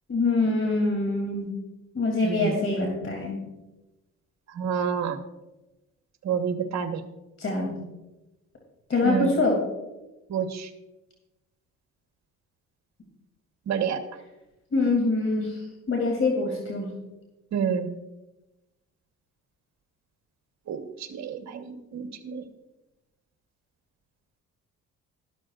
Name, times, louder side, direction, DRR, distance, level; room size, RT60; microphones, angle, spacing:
voice 1, 0.1-1.5 1.9-3.4 7.4-7.8 8.9-9.6 14.7-15.5 15.9-16.9, left 3 dB, 45° left, 0 dB, 3.0 m, -24 dB
voice 2, 2.2-2.5 4.5-5.2 6.2-7.0 9.0-9.3 10.3-10.7 13.7-14.0 17.5-17.9 20.7-22.4, right 7 dB, 65° right, 7 dB, 1.3 m, -28 dB
13.0 x 13.0 x 2.5 m, 1.0 s
cardioid pair, 90°, 30 cm